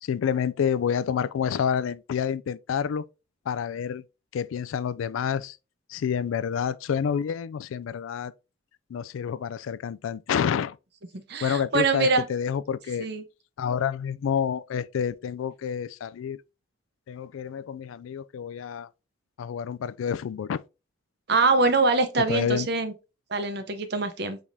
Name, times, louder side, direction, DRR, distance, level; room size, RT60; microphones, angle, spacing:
voice 1, 0.0-3.0 3.5-4.0 4.3-5.6 5.9-8.3 8.9-10.8 11.4-13.1 13.6-16.4 17.1-18.9 19.4-20.6 22.3-22.7, left 7 dB, 90° left, 0.3 m, -28 dB
voice 2, 11.1-12.3 13.0-13.2 21.3-22.9 23.3-24.4, right 3 dB, 55° right, 0.7 m, -24 dB
5.0 x 3.6 x 2.7 m
head